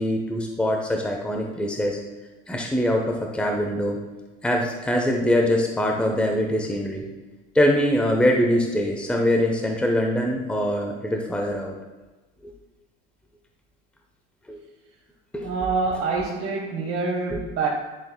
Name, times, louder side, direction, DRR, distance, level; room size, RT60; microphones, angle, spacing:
voice 1, 0.0-2.0 2.5-4.0 4.4-7.0 7.5-11.7 14.5-14.6 15.3-15.5 17.3-17.4, equal, 5° left, 1 dB, 0.9 m, -23 dB
voice 2, 15.4-17.7, right 4 dB, 40° right, -3 dB, 1.3 m, -26 dB
10.5 x 6.4 x 2.2 m, 1.2 s
hypercardioid pair, 85°, 34 cm